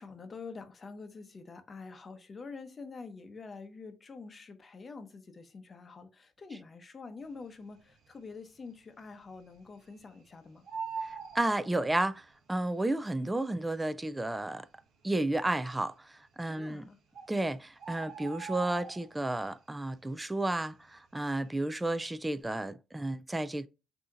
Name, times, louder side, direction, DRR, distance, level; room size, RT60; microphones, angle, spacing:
voice 1, 0.0-10.7 16.4-17.0, left 4 dB, 30° left, 0.7 m, -46 dB
Bird, 7.7-8.3 8.7-8.8 9.0-10.2 10.5-12.3 13.2-13.3 13.9-14.0 14.2-14.3 14.9-15.4 16.4-16.5 16.8-16.9 17.1-19.4 19.8-20.1 20.4-21.8 22.1-22.4, right 5 dB, 65° right, 1.1 m, -42 dB
voice 2, 11.0-14.7 15.0-16.8 17.3-23.7, right 2 dB, 10° right, 0.3 m, -32 dB
6.3 x 2.8 x 2.5 m
cardioid pair, 130°, 0 cm